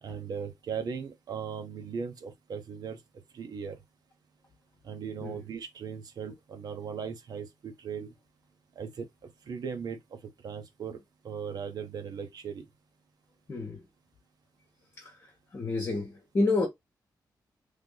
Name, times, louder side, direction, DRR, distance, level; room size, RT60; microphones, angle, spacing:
voice 1, 0.0-3.0 3.3-3.8 4.8-8.1 8.8-9.1 9.5-10.0 10.4-11.0 11.2-12.7, right 6 dB, 65° right, 0.9 m, -38 dB
voice 2, 13.5-13.8 15.0-15.2 15.5-16.7, left 3 dB, 35° left, 1.3 m, -29 dB
3.3 x 2.9 x 3.8 m
wide cardioid pair, 160°, 7 cm